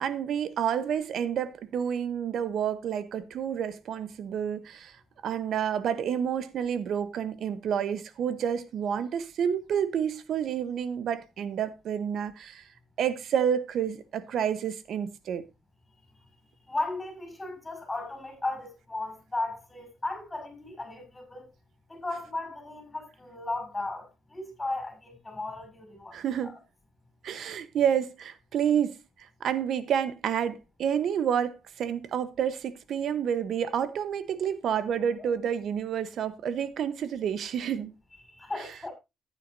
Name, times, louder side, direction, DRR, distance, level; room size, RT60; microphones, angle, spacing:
voice 1, 0.0-4.9 5.2-12.6 13.0-15.4 26.1-26.6 27.2-29.0 29.4-37.9 38.6-38.7, right 8 dB, 70° right, 1.0 m, -29 dB
voice 2, 16.7-21.5 21.9-26.2 26.4-26.6 35.2-35.3 38.3-38.9, left 2 dB, 15° left, 6.1 m, -36 dB
14.5 x 9.2 x 2.7 m
cardioid pair, 90°, 0 cm